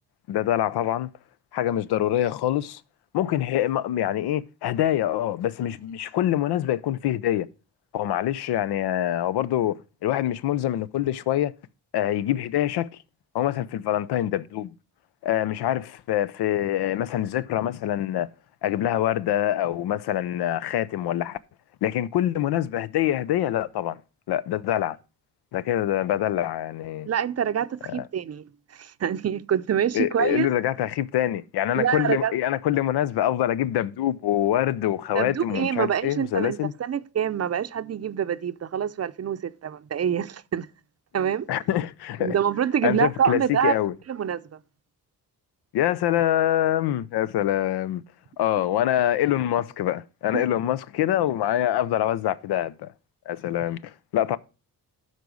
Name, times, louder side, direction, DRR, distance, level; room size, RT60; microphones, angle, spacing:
voice 1, 0.3-1.1 1.5-2.8 3.1-7.5 7.9-11.5 11.9-12.9 13.3-14.7 15.2-18.3 18.6-21.4 21.8-24.0 24.3-25.0 25.5-27.1 27.8-28.1 29.9-36.7 41.5-42.3 42.8-43.9 45.7-48.0 48.4-52.9 53.3-54.4, left 12 dB, 85° left, 0.6 m, -25 dB
voice 2, 27.1-28.4 28.7-30.5 31.7-32.3 35.1-40.7 41.1-41.5 42.2-43.7 44.1-44.4 50.3-50.4, right 8 dB, 40° right, 0.6 m, -26 dB
12.0 x 4.1 x 6.2 m
cardioid pair, 95°, 38 cm